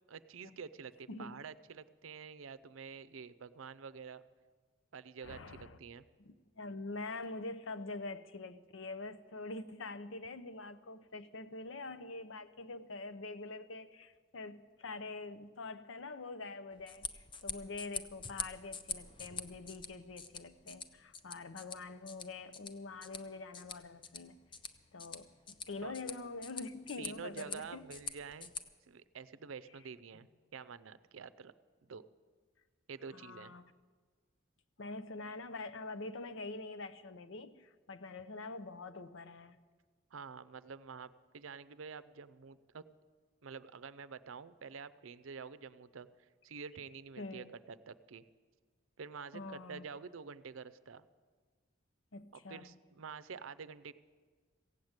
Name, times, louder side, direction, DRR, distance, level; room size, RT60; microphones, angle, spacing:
voice 1, 0.1-4.2 4.9-6.1 25.8-25.9 27.0-28.5 28.9-30.3 30.5-31.5 31.8-32.0 32.9-33.5 40.1-42.8 43.4-48.2 49.0-51.0 52.5-53.9, right 5 dB, 90° right, 0.5 m, -48 dB
voice 2, 1.1-1.5 5.2-5.8 6.2-24.4 24.9-27.9 33.1-33.7 34.8-39.6 47.2-47.5 49.3-49.9 52.1-52.8, left 3 dB, 80° left, 0.7 m, -45 dB
sound 1, 16.7-28.6, left 5 dB, 25° left, 0.5 m, -46 dB
15.5 x 8.9 x 8.0 m
head